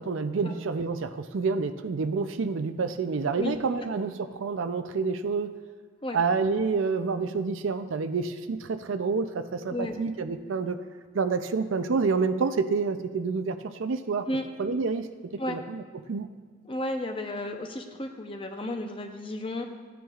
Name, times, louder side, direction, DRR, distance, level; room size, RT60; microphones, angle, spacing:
voice 1, 0.0-5.5 6.1-10.8 11.1-14.3 14.6-15.8 16.1-16.3, right 4 dB, 75° right, 9 dB, 0.5 m, -28 dB
voice 2, 16.6-19.6, left 1 dB, 25° left, 5 dB, 0.7 m, -33 dB
14.5 x 9.2 x 2.4 m, 1.5 s
head